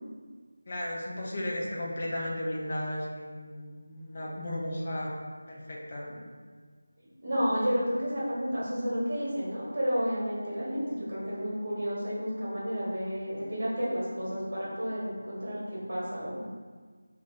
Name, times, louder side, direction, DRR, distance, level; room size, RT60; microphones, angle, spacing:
voice 1, 0.7-5.1 5.5-6.2 7.3-7.7, left 1 dB, 35° left, -3 dB, 0.6 m, -35 dB
voice 2, 7.2-16.4, equal, 40° right, -7 dB, 1.3 m, -31 dB
5.2 x 2.5 x 2.4 m, 1.5 s
figure-of-eight pair, 165°, 0 cm